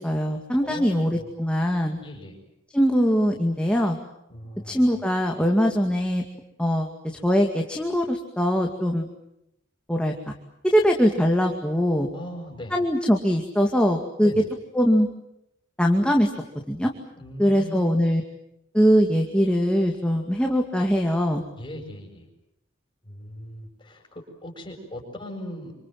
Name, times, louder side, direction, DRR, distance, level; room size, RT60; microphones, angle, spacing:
voice 1, 0.0-2.0 2.7-4.0 4.7-6.2 6.6-9.1 9.9-10.4 10.6-12.1 12.7-14.3 14.7-15.1 15.8-16.3 16.7-16.9 17.4-18.2 18.7-21.4, equal, 5° left, 1 dB, 2.3 m, -22 dB
voice 2, 0.6-1.3 2.0-2.4 4.3-4.9 12.1-12.7 14.2-14.5 17.2-18.0 21.5-22.3 23.0-25.7, equal, 25° left, -1 dB, 6.7 m, -39 dB
28.0 x 26.0 x 7.7 m, 0.82 s
head